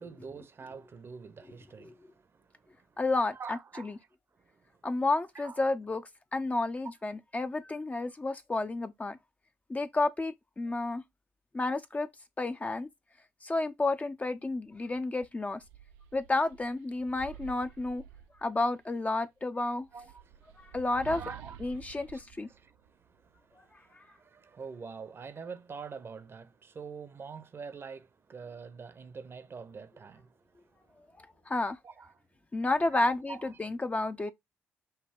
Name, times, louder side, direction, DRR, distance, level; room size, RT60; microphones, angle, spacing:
voice 1, 0.0-3.0 3.3-3.9 4.4-4.6 5.3-5.6 19.9-20.8 21.1-21.6 21.9-22.1 22.4-30.4 30.7-31.5 31.8-32.1 32.9-33.5, right 5 dB, 40° right, 0.7 m, -46 dB
voice 2, 3.0-4.0 4.8-6.0 6.3-9.2 9.7-11.0 11.5-12.1 12.4-12.9 13.4-15.6 16.1-18.0 18.4-19.9 20.6-21.2 21.6-22.5 23.9-24.0 31.2-31.8 32.5-34.3, left 2 dB, 20° left, 0.5 m, -31 dB
sound 1, 14.6-14.8 15.2-18.8 19.8-23.4, right 10 dB, 75° right, 0.4 m, -50 dB
5.5 x 2.2 x 3.6 m
hypercardioid pair, 50°, 6 cm